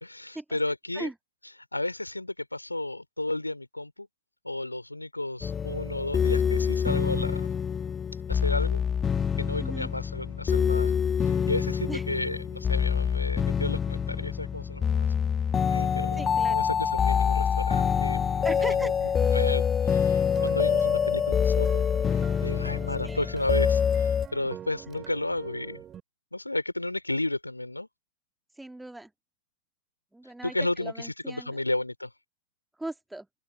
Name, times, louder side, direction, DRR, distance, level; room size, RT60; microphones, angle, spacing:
voice 1, 0.0-1.1 1.7-4.1 4.4-7.5 8.3-8.8 9.4-10.9 11.2-15.1 15.7-18.9 19.2-21.8 22.1-25.8 26.3-27.9 30.4-32.1, left 2 dB, 85° left, 2.6 m, -33 dB
sound 1, 5.4-24.3, left 7 dB, 20° left, 1.4 m, -26 dB
voice 2, 9.6-9.9 11.9-12.0 16.2-16.7 18.4-19.1 23.0-23.3 28.6-29.1 30.1-31.6 32.8-33.3, right 2 dB, 5° right, 1.8 m, -38 dB
sound 2, 20.2-26.0, right 9 dB, 25° right, 2.3 m, -44 dB
open air
figure-of-eight pair, 90°, 0 cm